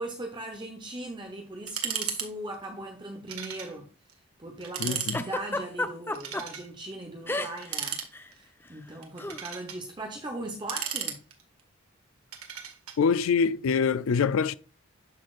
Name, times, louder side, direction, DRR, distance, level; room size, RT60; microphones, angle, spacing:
voice 1, 0.0-3.9 4.4-8.0 8.3-11.2, right 1 dB, 20° right, 0.9 m, -39 dB
sound 1, 1.7-2.3 2.5-2.6 3.3-3.7 4.1-4.2 4.6-5.2 6.1-6.7 7.6-8.4 9.0-9.8 10.4-11.6 12.3-13.0, right 8 dB, 85° right, 1.7 m, -35 dB
voice 2, 4.8-5.2 13.0-14.6, left 5 dB, 70° left, 0.4 m, -24 dB
Giggle, 5.1-6.4 7.3-7.8 8.0-8.3 9.2-9.4, left 2 dB, 10° left, 0.5 m, -31 dB
12.5 x 4.2 x 2.4 m
head